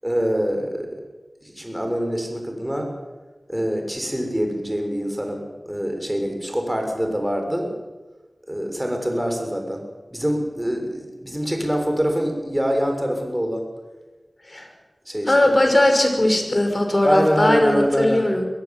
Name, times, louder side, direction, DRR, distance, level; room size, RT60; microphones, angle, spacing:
voice 1, 0.0-0.9 1.4-2.9 3.5-7.7 8.5-9.8 10.1-13.6 15.0-15.5 17.0-18.2, equal, 10° right, 3 dB, 7.0 m, -25 dB
voice 2, 15.3-18.5, left 1 dB, 40° left, 4 dB, 5.9 m, -18 dB
23.5 x 15.0 x 9.3 m, 1.2 s
cardioid pair, 40°, 0 cm